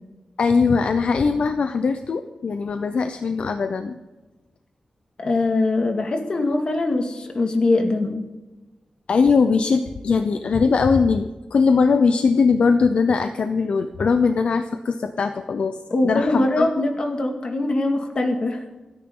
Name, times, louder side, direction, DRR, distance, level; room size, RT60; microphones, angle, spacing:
voice 1, 0.4-4.0 9.1-15.8 16.0-16.7, left 5 dB, 65° left, 8 dB, 0.8 m, -20 dB
voice 2, 5.2-8.2 15.9-18.6, left 2 dB, 45° left, 4 dB, 2.2 m, -22 dB
29.0 x 10.0 x 3.9 m, 1.1 s
wide cardioid pair, 175°, 2 cm